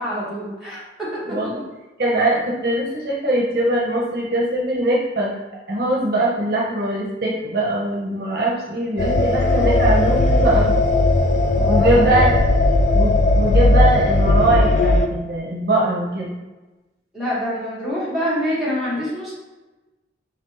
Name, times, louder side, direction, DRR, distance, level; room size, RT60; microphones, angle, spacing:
voice 1, 0.0-1.1 11.5-12.0 17.1-19.3, equal, ahead, -10 dB, 1.4 m, -26 dB
voice 2, 1.2-1.6 2.0-5.3 5.7-10.8 11.7-12.4 12.9-16.3, right 1 dB, 55° right, -3 dB, 0.8 m, -21 dB
sound 1, 9.0-15.1, left 2 dB, 40° left, 0.3 m, -17 dB
4.0 x 3.3 x 3.0 m, 1.1 s
head